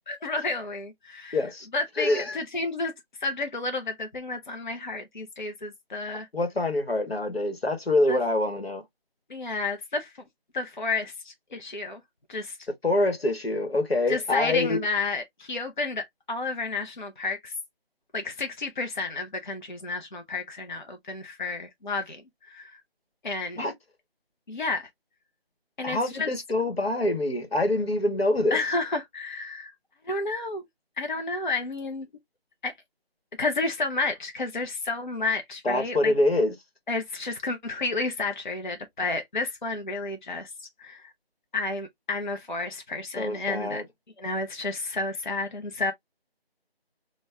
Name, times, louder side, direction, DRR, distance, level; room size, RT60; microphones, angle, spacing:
voice 1, 0.1-1.4 1.7-2.9 3.2-6.3 8.1-8.2 9.3-10.1 10.5-12.0 12.3-12.6 14.1-17.5 18.1-22.8 23.2-23.7 24.5-24.9 25.8-26.3 28.5-29.7 30.0-30.6 31.0-32.1 32.6-32.7 33.4-36.1 36.9-41.1 41.5-43.8 44.2-45.9, left 3 dB, 50° left, 0.5 m, -31 dB
voice 2, 1.3-1.7 2.0-2.4 6.3-8.8 12.8-14.8 23.6-23.7 25.8-28.6 35.6-36.5 43.2-43.8, left 2 dB, 75° left, 1.1 m, -25 dB
5.1 x 2.1 x 2.2 m
figure-of-eight pair, 165°, 31 cm